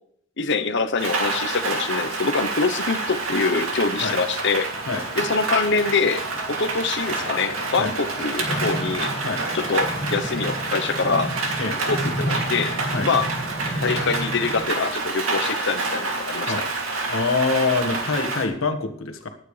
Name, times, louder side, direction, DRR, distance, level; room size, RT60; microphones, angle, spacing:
voice 1, 0.4-4.7 5.2-6.2 6.5-9.1 9.5-11.3 11.9-12.8 13.0-13.3 13.8-16.5, left 4 dB, 60° left, 9 dB, 0.9 m, -24 dB
Rain, 1.0-18.5, right 3 dB, 80° right, 2.7 m, -28 dB
sound 1, 4.7-14.6, equal, 15° left, 2.1 m, -32 dB
voice 2, 17.1-19.3, left 4 dB, 80° left, 5 dB, 1.6 m, -25 dB
19.0 x 9.3 x 3.3 m, 0.66 s
head